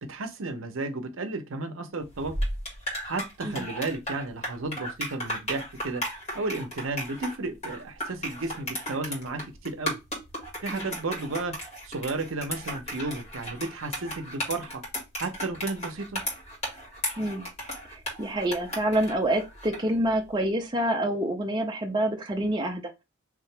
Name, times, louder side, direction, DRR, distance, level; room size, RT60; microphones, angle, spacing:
voice 1, 0.0-2.3 3.0-6.0 6.3-10.0 10.6-11.6 11.8-14.8 15.2-16.2, right 3 dB, 70° right, 0.7 m, -33 dB
sound 1, 2.1-19.9, equal, 35° left, 1.9 m, -35 dB
voice 2, 17.2-17.5 17.9-22.9, right 1 dB, 20° right, 0.5 m, -27 dB
3.6 x 2.9 x 3.2 m
head